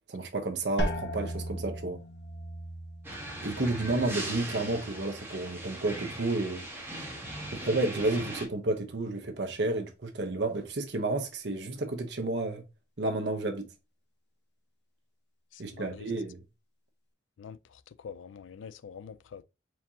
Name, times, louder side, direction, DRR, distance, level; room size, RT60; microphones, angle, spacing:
voice 1, 0.1-2.0 3.4-6.7 7.5-12.6 13.0-13.7 15.6-16.4, right 2 dB, 65° right, 0.9 m, -31 dB
sound 1, 0.8-6.4 6.7-7.4 8.0-8.4, equal, 65° left, 0.9 m, -39 dB
sound 2, 3.0-8.5, right 1 dB, 10° right, 1.3 m, -39 dB
voice 2, 15.5-16.1 17.4-19.4, left 7 dB, 90° left, 0.4 m, -46 dB
4.6 x 3.6 x 2.7 m
head